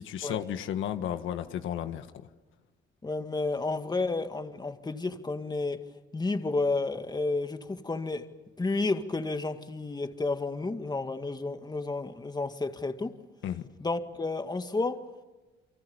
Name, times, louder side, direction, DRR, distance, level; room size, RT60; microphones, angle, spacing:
voice 1, 0.0-2.1 13.4-13.6, left 10 dB, 80° left, 1.6 m, -33 dB
voice 2, 3.0-5.9 6.1-8.3 8.6-13.2 13.8-15.0, left 3 dB, 20° left, 2.0 m, -31 dB
30.0 x 24.0 x 7.1 m
cardioid pair, 90°, 20 cm